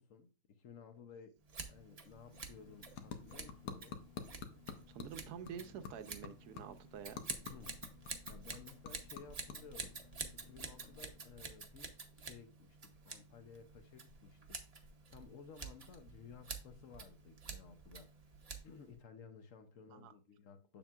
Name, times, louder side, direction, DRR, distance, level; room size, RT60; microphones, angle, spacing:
voice 1, 0.0-1.4 1.7-4.0 7.5-7.8 8.3-10.0 10.3-18.4 18.6-20.8, left 6 dB, 60° left, 0.9 m, -56 dB
Scissors, 1.5-19.0, right 4 dB, 40° right, 0.6 m, -50 dB
sound 1, 2.0-11.4, left 7 dB, 85° left, 1.4 m, -52 dB
voice 2, 4.9-7.3 19.9-20.1, right 8 dB, 75° right, 1.1 m, -48 dB
7.2 x 7.1 x 2.4 m
omnidirectional pair, 1.7 m